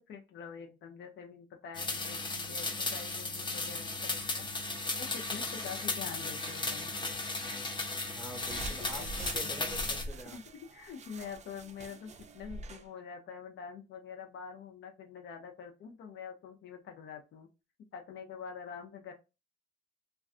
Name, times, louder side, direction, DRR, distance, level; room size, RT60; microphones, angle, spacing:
voice 1, 0.1-4.5 5.0-7.0 8.8-9.1 9.4-9.5 10.3-17.5 17.9-19.1, left 6 dB, 70° left, 4 dB, 0.6 m, -46 dB
sound 1, 1.7-10.0, left 3 dB, 25° left, 0.6 m, -36 dB
voice 2, 8.1-10.5, right 1 dB, ahead, 1 dB, 1.0 m, -46 dB
sound 2, 8.4-12.9, right 2 dB, 35° right, 0.4 m, -44 dB
2.4 x 2.2 x 2.4 m, 0.28 s
cardioid pair, 90°, 20 cm